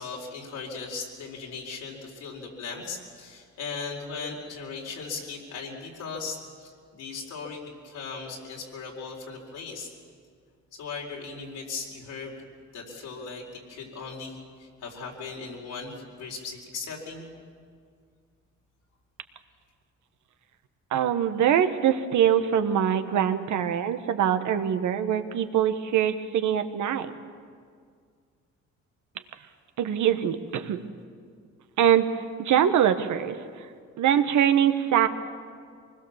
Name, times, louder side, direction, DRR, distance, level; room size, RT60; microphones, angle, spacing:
voice 1, 0.0-9.9 10.7-12.4 12.7-17.3, left 4 dB, 80° left, -2 dB, 4.3 m, -38 dB
voice 2, 20.9-27.1 29.8-30.8 31.8-32.1 32.4-33.4 34.0-35.1, right 9 dB, 75° right, 9 dB, 1.4 m, -23 dB
24.5 x 20.0 x 7.3 m, 2.1 s
cardioid pair, 90°, 30 cm